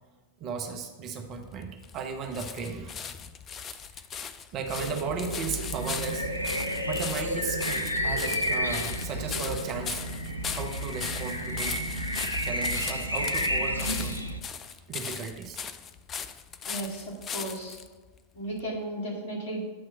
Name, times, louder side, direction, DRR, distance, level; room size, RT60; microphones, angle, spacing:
voice 1, 0.4-3.1 3.9-6.3 6.9-10.0 10.5-11.8 12.4-14.3 14.9-15.6, right 5 dB, 35° right, 4 dB, 0.7 m, -36 dB
sound 1, 1.3-17.9 18.6-18.7, left 7 dB, 25° left, 0.4 m, -38 dB
sound 2, 4.7-14.4, equal, 90° right, 0.5 m, -31 dB
voice 2, 16.6-17.8 18.3-19.6, right 1 dB, 50° left, -3 dB, 2.3 m, -35 dB
8.6 x 3.2 x 6.1 m, 1.3 s
figure-of-eight pair, 90°, 0 cm